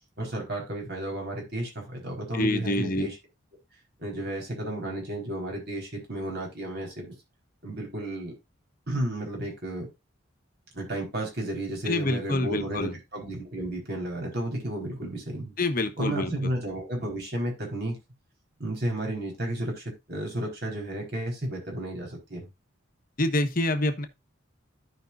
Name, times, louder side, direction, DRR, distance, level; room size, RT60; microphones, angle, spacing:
voice 1, 0.2-3.2 4.0-7.1 7.6-8.3 8.9-9.9 10.7-15.5 16.0-18.0 18.6-22.5, right 1 dB, 55° right, 4.5 m, -32 dB
voice 2, 2.3-3.1 11.8-13.0 15.6-16.3 23.2-24.1, left 2 dB, 45° left, 1.2 m, -26 dB
14.5 x 5.4 x 2.6 m
head